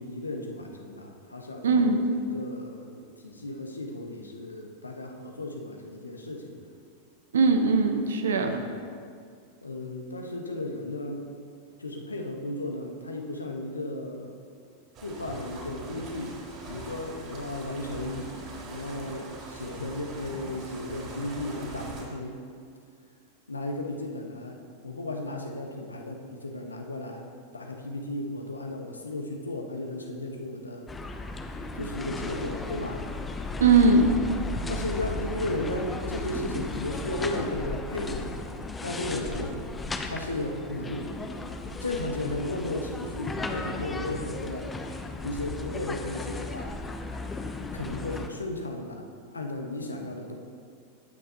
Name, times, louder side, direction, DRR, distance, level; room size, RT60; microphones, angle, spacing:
voice 1, 0.0-6.6 8.4-8.8 9.6-11.3 11.8-14.4 15.0-16.4 16.7-18.3 18.6-22.4 23.5-30.9 31.8-33.1 34.7-38.4 38.8-39.6 40.0-41.2 41.8-44.7 45.2-46.8 47.7-50.4, left 1 dB, 80° left, 2 dB, 1.3 m, -35 dB
voice 2, 1.6-2.0 7.3-8.6 33.6-34.1, right 4 dB, 65° right, 5 dB, 1.2 m, -20 dB
sound 1, 14.9-22.0, right 2 dB, 35° right, 3.5 m, -42 dB
sound 2, 30.9-48.3, left 2 dB, 15° left, 0.9 m, -35 dB
20.5 x 9.3 x 3.0 m, 2.2 s
figure-of-eight pair, 90°, 0 cm